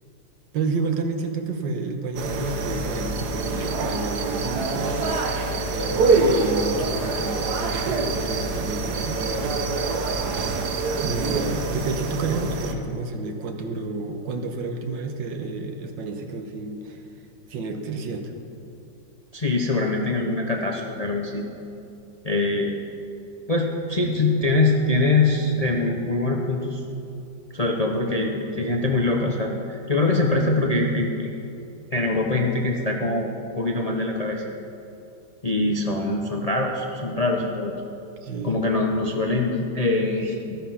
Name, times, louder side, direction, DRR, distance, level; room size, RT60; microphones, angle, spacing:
voice 1, 0.5-9.9 11.0-17.0 17.5-18.3 38.2-38.6, right 3 dB, 85° right, 5 dB, 1.7 m, -30 dB
sound 1, 2.2-12.7, right 3 dB, 65° right, 1.4 m, -25 dB
voice 2, 19.3-21.5 22.2-22.7 23.5-26.8 27.5-31.3 31.9-33.3 33.6-34.4 35.4-37.7 38.4-40.6, left 2 dB, 45° left, 1 dB, 0.5 m, -23 dB
13.5 x 9.8 x 5.7 m, 2.7 s
omnidirectional pair, 1.9 m